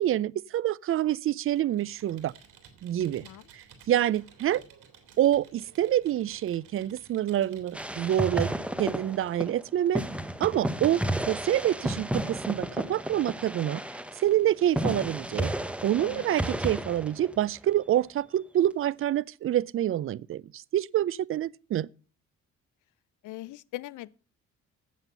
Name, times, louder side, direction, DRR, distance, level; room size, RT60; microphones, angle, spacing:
voice 1, 0.0-2.3 2.8-3.2 3.5-4.6 5.2-10.0 10.4-11.0 11.3-13.8 14.2-15.5 15.8-21.9, right 12 dB, 45° right, 0.4 m, -27 dB
Computer keyboard, 1.5-8.3, right 7 dB, 85° right, 2.4 m, -55 dB
voice 2, 3.1-3.5 16.0-16.5 23.2-24.1, left 16 dB, 85° left, 0.6 m, -41 dB
sound 1, 7.7-9.6 10.0-17.7, right 1 dB, 5° right, 0.8 m, -32 dB
8.1 x 7.4 x 6.7 m
cardioid pair, 90°, 30 cm